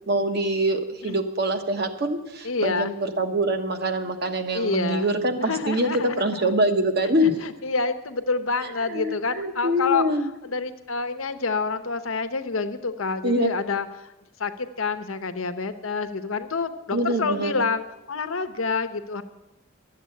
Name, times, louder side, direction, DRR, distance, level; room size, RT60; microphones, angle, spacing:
voice 1, 0.0-7.4 8.6-10.3 13.2-13.5 16.9-17.7, right 1 dB, 50° right, 7 dB, 1.1 m, -25 dB
voice 2, 2.4-2.9 4.5-5.1 5.4-6.5 7.0-10.1 10.4-13.9 14.4-19.2, left 4 dB, 80° left, 9 dB, 0.9 m, -28 dB
12.0 x 8.1 x 8.5 m, 0.97 s
head